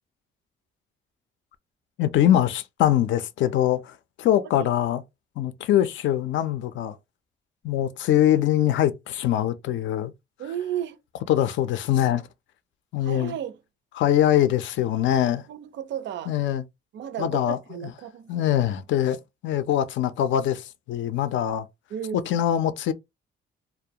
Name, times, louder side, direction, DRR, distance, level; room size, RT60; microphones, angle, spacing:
voice 1, 2.0-5.0 5.4-7.0 7.6-10.1 11.3-12.3 12.9-13.3 14.0-15.4 16.3-16.6 17.2-17.6 18.3-21.7 22.3-22.9, left 11 dB, 75° left, 0.4 m, -23 dB
voice 2, 10.4-11.0 13.0-13.6 15.5-16.3 16.9-18.4 21.9-22.3, right 10 dB, 65° right, 0.4 m, -33 dB
2.4 x 2.0 x 2.7 m
cardioid pair, 90°, 20 cm